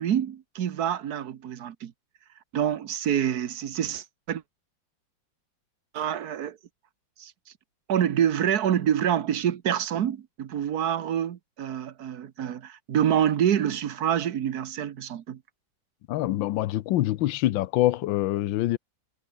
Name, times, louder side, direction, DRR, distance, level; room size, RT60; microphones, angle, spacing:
voice 1, 0.0-1.9 2.5-4.4 5.9-6.6 7.2-7.3 7.9-15.4, right 9 dB, 60° right, 1.4 m, -26 dB
voice 2, 16.1-18.8, left 15 dB, 80° left, 1.4 m, -25 dB
omnidirectional pair, 2.1 m